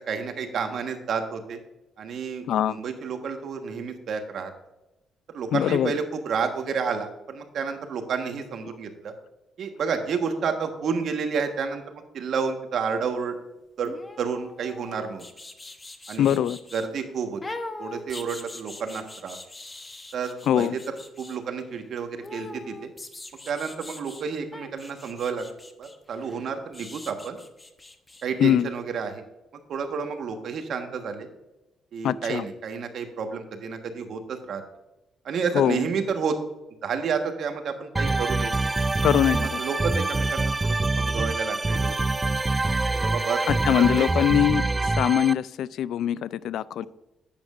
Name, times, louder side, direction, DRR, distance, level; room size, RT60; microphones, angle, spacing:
voice 1, 0.1-1.6 2.0-4.5 5.3-9.1 9.6-13.4 13.8-13.9 14.2-15.2 16.1-16.4 16.7-17.4 17.8-19.4 20.1-22.9 23.5-25.5 25.8-27.4 28.2-29.2 29.7-31.3 31.9-34.6 35.2-36.4 36.8-38.5 39.4-41.9 42.9-43.4 43.8-44.1, right 5 dB, 65° right, 6 dB, 1.4 m, -30 dB
voice 2, 2.5-2.8 5.5-5.9 16.2-16.6 20.5-20.8 28.4-28.7 32.0-32.5 35.5-35.9 39.0-39.6 43.5-46.8, left 10 dB, 75° left, 18 dB, 0.3 m, -23 dB
sound 1, 13.8-16.9 17.4-21.4 22.2-24.2 24.5-28.3 28.6-28.7, left 2 dB, 20° left, 0.9 m, -42 dB
sound 2, 38.0-45.3, right 2 dB, 20° right, 0.3 m, -25 dB
10.5 x 8.8 x 2.5 m, 0.95 s
cardioid pair, 90°, 0 cm